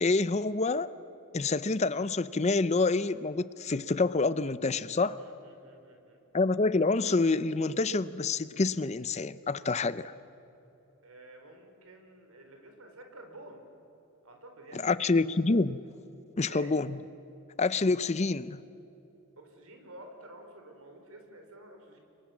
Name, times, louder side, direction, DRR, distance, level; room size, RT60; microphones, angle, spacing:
voice 1, 0.0-0.9 1.3-5.2 6.3-10.1 14.7-15.8 16.4-17.0 17.6-18.6, left 3 dB, 30° left, 16 dB, 0.5 m, -27 dB
voice 2, 5.2-6.2 10.0-10.1 11.0-13.7 14.2-15.1 16.5-16.7 19.4-22.0, right 1 dB, 70° right, 4 dB, 4.7 m, -50 dB
30.0 x 23.5 x 7.3 m, 3.0 s
head